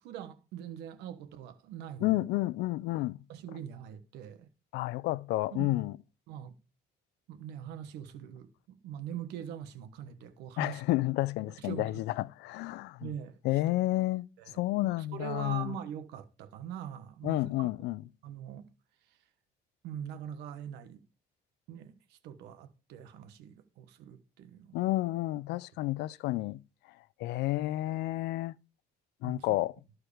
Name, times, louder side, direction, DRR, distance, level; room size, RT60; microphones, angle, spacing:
voice 1, 0.0-2.2 3.3-4.5 5.5-5.8 6.3-6.5 7.3-10.8 11.6-12.0 13.0-13.4 14.4-14.6 15.0-17.7 18.2-18.7 19.8-21.0 21.7-24.9 29.2-29.6, right 9 dB, 90° right, 1.2 m, -43 dB
voice 2, 2.0-3.2 4.7-6.0 10.6-13.1 13.4-15.8 17.2-18.0 24.7-26.6 27.2-28.5 29.2-29.7, left 18 dB, 85° left, 0.5 m, -31 dB
13.5 x 4.7 x 4.9 m
cardioid pair, 110°, 17 cm